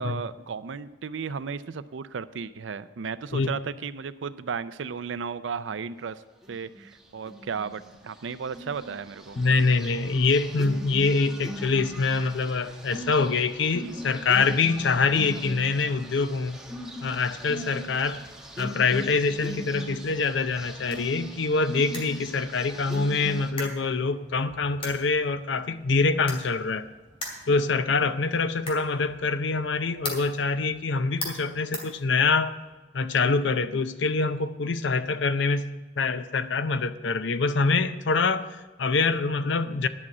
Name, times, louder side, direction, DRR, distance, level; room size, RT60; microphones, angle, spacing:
voice 1, 0.0-6.2 6.5-9.4, right 6 dB, 85° right, 14 dB, 0.5 m, -34 dB
sound 1, 6.4-6.9 7.3-7.8 8.3-23.5, equal, 5° right, 1.2 m, -40 dB
voice 2, 9.4-16.6 17.0-18.2 18.6-26.9 27.5-32.5 32.9-39.9, left 4 dB, 75° left, 11 dB, 0.6 m, -25 dB
sound 2, 20.7-32.6, left 1 dB, 30° left, 2.5 m, -42 dB
11.0 x 6.2 x 8.4 m, 1.2 s
head